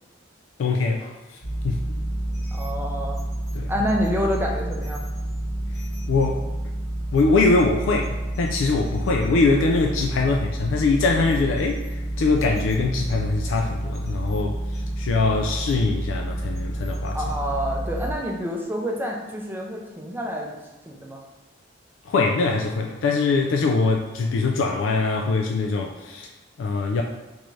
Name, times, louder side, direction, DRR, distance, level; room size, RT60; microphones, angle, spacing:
voice 1, 0.6-1.4 1.6-1.8 3.5-3.7 6.1-6.4 7.1-17.2 22.1-26.3 26.6-27.0, left 3 dB, 80° left, 2 dB, 0.3 m, -23 dB
sound 1, 1.4-18.1, right 1 dB, 15° left, 0.9 m, -29 dB
voice 2, 2.5-3.2 3.7-5.0 17.1-20.5 20.9-21.2, equal, 10° right, 0 dB, 0.5 m, -28 dB
3.4 x 2.6 x 3.1 m, 1.2 s
head